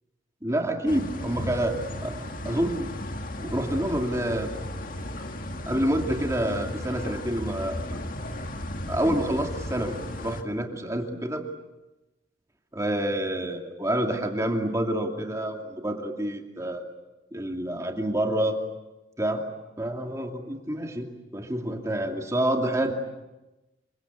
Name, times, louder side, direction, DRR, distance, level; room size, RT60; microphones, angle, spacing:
voice 1, 0.4-2.9 3.4-4.5 5.7-7.9 8.9-11.4 12.7-16.8 17.3-18.6 19.2-19.4 19.8-21.1 21.3-22.9, right 1 dB, 15° right, 3 dB, 2.5 m, -28 dB
sound 1, 0.9-10.4, left 1 dB, 50° left, 1.9 m, -35 dB
28.0 x 24.5 x 8.2 m, 1.0 s
head